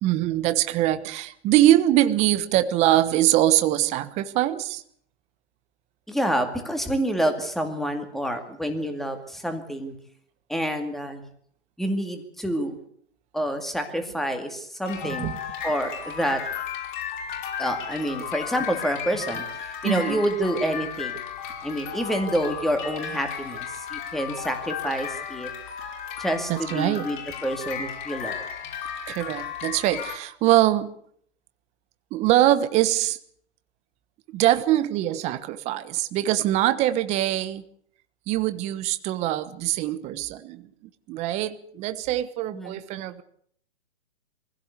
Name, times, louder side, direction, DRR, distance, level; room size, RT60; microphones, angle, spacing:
voice 1, 0.0-4.8 15.0-15.4 19.8-20.2 26.5-27.1 29.1-30.9 32.1-33.2 34.3-37.6 38.3-40.7 41.1-43.2, right 13 dB, 20° right, 11 dB, 1.1 m, -23 dB
voice 2, 6.1-9.9 10.5-11.2 11.8-12.8 13.3-15.3 15.6-16.4 17.6-19.4 19.8-21.1 21.6-25.5 26.2-28.4 42.5-42.8, equal, ahead, 6 dB, 2.2 m, -28 dB
sound 1, 14.9-30.2, left 7 dB, 45° left, 5.3 m, -34 dB
23.5 x 16.5 x 8.2 m, 0.64 s
hypercardioid pair, 140°, 34 cm